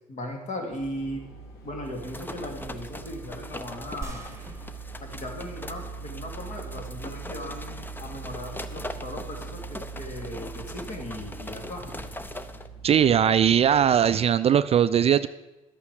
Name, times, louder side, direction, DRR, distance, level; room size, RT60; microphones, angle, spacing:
voice 1, 0.1-1.2 1.6-4.3 5.0-11.9, left 1 dB, 40° left, 2 dB, 2.8 m, -37 dB
sound 1, 0.7-14.0, right 5 dB, 60° left, 1.9 m, -42 dB
sound 2, 1.9-12.7, left 2 dB, 10° left, 0.7 m, -41 dB
sound 3, 4.0-5.8 6.3-6.4, right 3 dB, 15° right, 1.5 m, -43 dB
voice 2, 12.8-15.3, right 9 dB, 35° right, 14 dB, 0.4 m, -20 dB
12.0 x 8.3 x 4.9 m, 1.0 s
hypercardioid pair, 70°, 18 cm